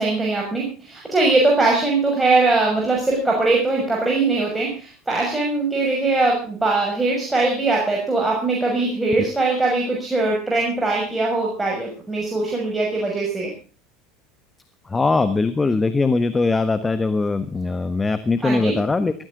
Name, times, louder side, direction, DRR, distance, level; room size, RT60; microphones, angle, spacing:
voice 1, 0.0-13.5 18.4-18.7, right 3 dB, 10° right, -2 dB, 6.4 m, -21 dB
voice 2, 14.9-19.1, left 3 dB, 20° left, 11 dB, 1.3 m, -21 dB
18.5 x 14.5 x 3.9 m, 0.36 s
hypercardioid pair, 80°, 0 cm